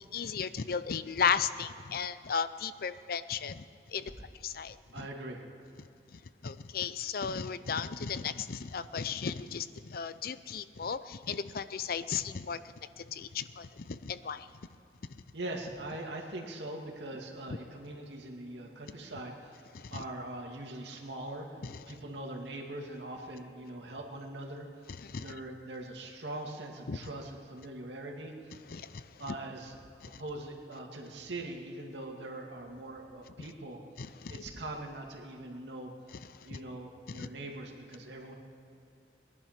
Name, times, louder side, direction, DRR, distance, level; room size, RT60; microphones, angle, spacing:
voice 1, 0.0-3.6 3.9-4.1 4.4-4.8 6.4-12.6 13.1-14.5 19.7-20.0 25.0-25.3 26.9-27.0 28.7-29.0 30.1-30.2 34.0-34.4 37.1-37.3, left 6 dB, 55° left, 13 dB, 0.5 m, -35 dB
voice 2, 4.9-5.4 15.3-19.6 19.9-21.6 21.9-24.7 25.2-28.5 29.2-29.8 30.2-33.8 34.3-35.9 36.4-38.3, right 1 dB, 90° right, 1 dB, 2.3 m, -42 dB
20.0 x 11.0 x 5.8 m, 2.7 s
head